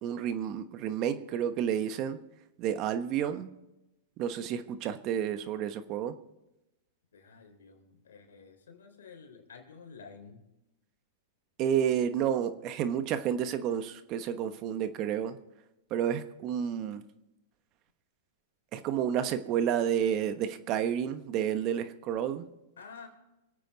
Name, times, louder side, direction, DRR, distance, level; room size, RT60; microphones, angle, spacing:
voice 1, 0.0-2.2 2.6-3.5 4.2-6.1 11.6-15.4 15.9-17.0 18.7-22.5, right 9 dB, 40° right, 10 dB, 1.2 m, -30 dB
voice 2, 3.2-3.5 7.1-10.5 22.8-23.1, left 5 dB, 85° left, 4 dB, 3.6 m, -51 dB
25.5 x 8.9 x 4.0 m, 0.94 s
hypercardioid pair, 120°, 0 cm